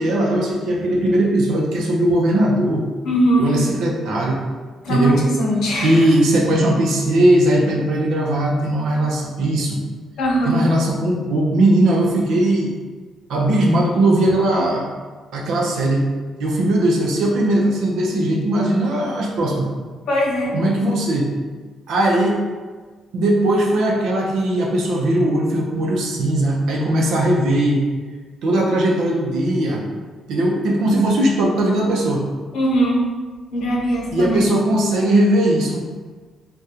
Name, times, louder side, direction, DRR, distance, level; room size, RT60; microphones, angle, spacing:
voice 1, 0.0-2.8 3.4-4.4 4.9-5.2 5.8-9.8 10.4-12.7 13.3-14.9 15.3-16.1 16.4-19.7 20.5-21.3 21.9-22.4 23.1-27.9 28.4-29.9 30.3-32.2 34.1-35.9, right 1 dB, 80° right, -1 dB, 0.6 m, -18 dB
voice 2, 3.0-3.5 4.8-6.1 10.2-10.7 20.1-20.6 32.5-33.1 33.5-34.5, equal, 80° left, -1 dB, 0.6 m, -20 dB
3.6 x 2.2 x 2.8 m, 1.4 s
cardioid pair, 90°, 0 cm